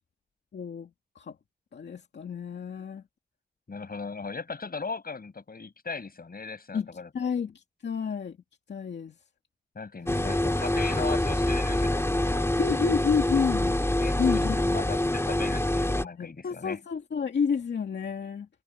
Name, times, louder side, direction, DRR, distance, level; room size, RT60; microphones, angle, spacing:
voice 1, 0.5-0.9 1.2-1.4 1.7-3.0 6.7-6.9 7.1-8.4 8.7-9.2 10.1-10.3 12.6-13.8 14.2-14.6 16.0-18.5, left 6 dB, 85° left, 2.3 m, -30 dB
voice 2, 3.7-7.3 9.8-12.6 14.0-16.8, left 4 dB, 60° left, 6.8 m, -38 dB
sound 1, 10.1-16.0, left 1 dB, 15° left, 2.7 m, -26 dB
cardioid pair, 45°, 18 cm